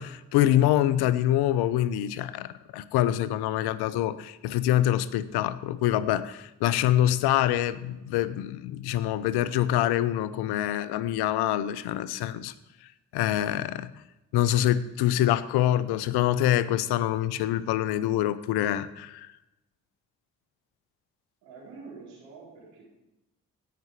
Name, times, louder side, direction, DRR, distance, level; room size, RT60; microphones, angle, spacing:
voice 1, 0.0-12.5 13.1-13.9 14.3-19.3, left 12 dB, 70° left, 16 dB, 0.7 m, -25 dB
voice 2, 21.4-22.9, right 4 dB, 80° right, -4 dB, 3.5 m, -46 dB
17.0 x 5.9 x 4.7 m, 0.97 s
hypercardioid pair, 40°, 40 cm